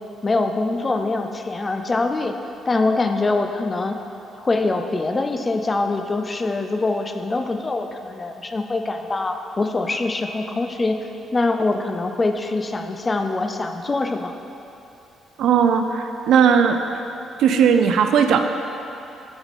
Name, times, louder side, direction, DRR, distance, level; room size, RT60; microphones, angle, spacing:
voice 1, 0.2-2.3 2.7-4.0 4.4-11.0 11.3-14.4, left 3 dB, 25° left, 6 dB, 0.4 m, -23 dB
voice 2, 15.4-16.8 17.4-18.4, right 7 dB, 75° right, 6 dB, 0.4 m, -17 dB
6.1 x 4.9 x 4.1 m, 2.9 s
cardioid pair, 90°, 0 cm